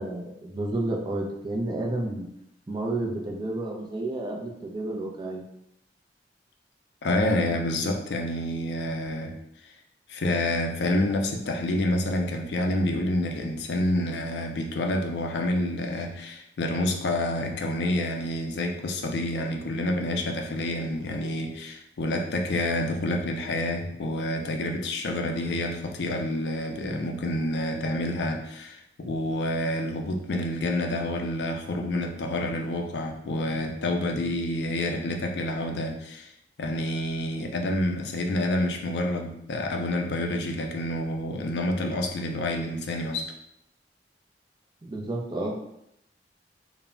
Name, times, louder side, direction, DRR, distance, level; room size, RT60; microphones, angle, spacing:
voice 1, 0.0-2.3 2.7-5.4 34.1-34.2 44.8-45.6, right 2 dB, 25° right, -1 dB, 0.4 m, -31 dB
voice 2, 7.0-9.3 9.6-9.7 10.1-36.3 36.6-43.3, left 1 dB, 65° left, 3 dB, 0.4 m, -28 dB
2.2 x 2.0 x 3.6 m, 0.78 s
head